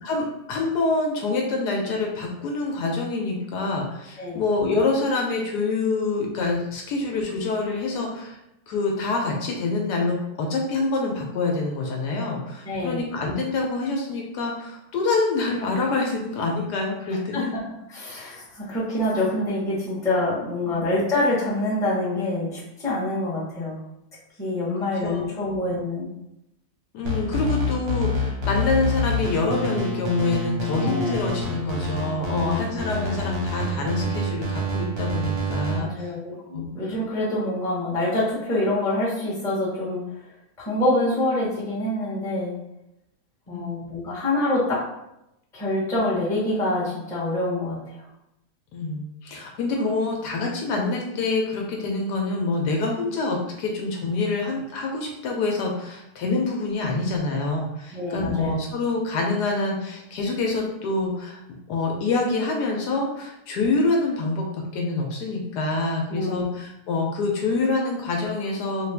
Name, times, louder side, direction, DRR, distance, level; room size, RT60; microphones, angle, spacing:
voice 1, 0.0-8.4 8.7-17.5 20.6-20.8 25.0-25.3 26.9-36.1 36.5-36.9 43.5-43.7 48.7-61.4 61.7-68.9, left 3 dB, 75° left, 0 dB, 1.1 m, -26 dB
voice 2, 12.6-13.0 17.3-17.4 17.9-23.8 24.4-26.1 30.8-31.1 32.4-32.7 35.8-40.0 40.7-42.5 43.5-44.8 45.5-47.8 57.9-58.6 66.1-66.5, left 1 dB, 5° left, -7 dB, 0.7 m, -26 dB
sound 1, 27.0-35.8, left 1 dB, 45° right, 0.8 m, -27 dB
3.5 x 2.4 x 3.3 m, 0.86 s
omnidirectional pair, 1.9 m